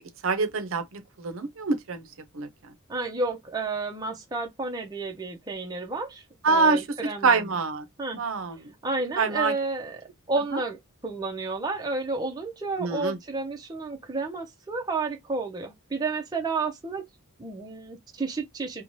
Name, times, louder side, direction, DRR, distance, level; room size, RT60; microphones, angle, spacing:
voice 1, 0.2-2.0 2.3-2.7 6.4-6.9 7.2-7.9 8.1-8.7 9.2-9.5 12.8-13.2, right 4 dB, 65° right, 0.6 m, -25 dB
voice 2, 2.9-7.4 8.0-8.2 8.8-10.0 10.3-10.8 11.0-17.1 17.4-18.8, right 3 dB, 20° right, 0.5 m, -31 dB
2.7 x 2.1 x 3.0 m
head